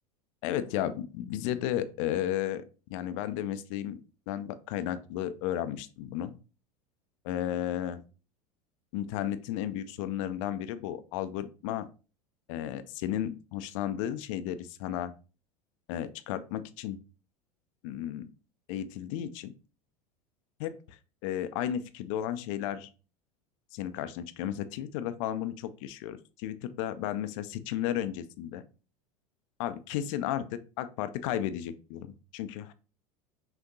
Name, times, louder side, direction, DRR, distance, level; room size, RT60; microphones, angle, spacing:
voice 1, 0.4-2.6 2.9-4.0 4.3-6.4 7.2-8.0 8.9-11.9 12.5-15.1 15.9-17.0 17.8-18.3 18.7-19.5 20.6-22.9 23.7-28.6 29.6-32.7, left 11 dB, 55° left, 12 dB, 0.5 m, -33 dB
5.9 x 2.6 x 2.7 m, 0.35 s
figure-of-eight pair, 80°, 19 cm